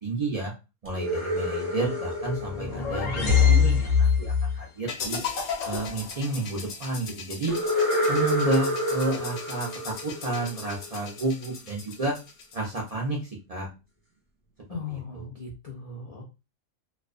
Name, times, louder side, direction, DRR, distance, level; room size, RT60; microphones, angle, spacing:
voice 1, 0.0-0.5 0.8-5.2 5.6-7.6 8.1-12.1 12.5-13.7 14.9-15.2, right 2 dB, 55° right, -2 dB, 0.4 m, -31 dB
sound 1, 0.8-3.8 7.5-11.2, left 1 dB, 10° right, 0.7 m, -29 dB
sound 2, 2.3-4.6, left 6 dB, 90° left, 1.0 m, -22 dB
sound 3, 4.9-12.9, left 5 dB, 65° left, 0.8 m, -38 dB
voice 2, 14.7-16.2, left 4 dB, 50° left, -3 dB, 0.4 m, -38 dB
2.4 x 2.2 x 2.4 m, 0.28 s
omnidirectional pair, 1.3 m